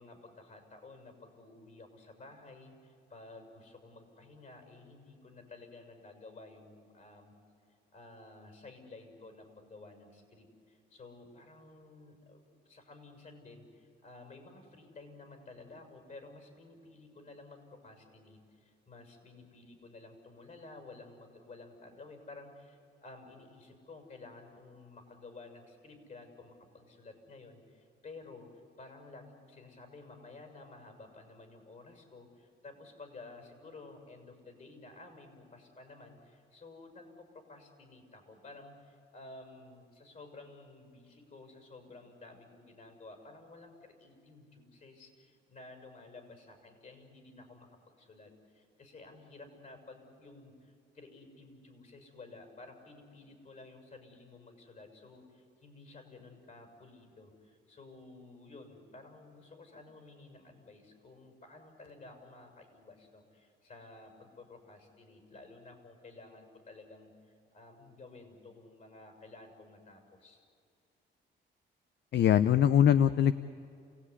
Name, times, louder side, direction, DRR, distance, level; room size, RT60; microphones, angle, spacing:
voice 1, 0.0-7.3 7.9-28.5 28.8-70.5, left 3 dB, 40° left, 5 dB, 6.7 m, -53 dB
voice 2, 72.1-73.3, left 9 dB, 60° left, 13 dB, 0.7 m, -22 dB
28.5 x 17.5 x 9.9 m, 2.4 s
cardioid pair, 90°, 20 cm